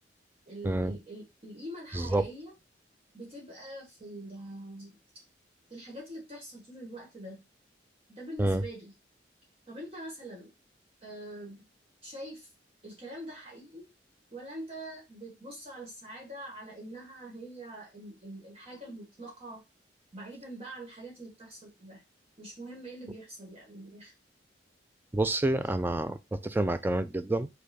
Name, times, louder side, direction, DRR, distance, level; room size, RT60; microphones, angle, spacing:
voice 1, 0.5-2.5 3.1-5.2 5.7-7.4 8.1-8.9 9.7-10.5 11.0-11.6 12.0-12.5 12.8-13.9 14.3-19.6 20.1-22.0 22.4-24.1, right 1 dB, 35° right, 1.2 m, -44 dB
voice 2, 25.1-27.5, right 2 dB, 10° right, 0.3 m, -28 dB
5.2 x 2.2 x 4.0 m
head